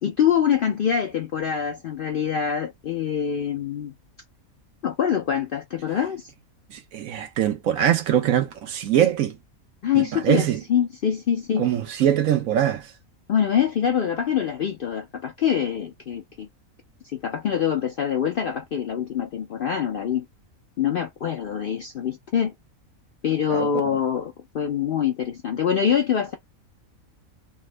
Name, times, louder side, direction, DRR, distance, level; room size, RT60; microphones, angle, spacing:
voice 1, 0.0-3.9 4.8-6.3 9.8-11.7 13.3-16.5 17.1-20.3 20.8-22.5 23.2-26.3, left 8 dB, 65° left, 0.5 m, -24 dB
voice 2, 6.7-9.4 9.9-10.6 11.6-12.9 23.5-23.7, right 10 dB, 75° right, 1.2 m, -22 dB
3.4 x 2.0 x 3.2 m
omnidirectional pair, 1.5 m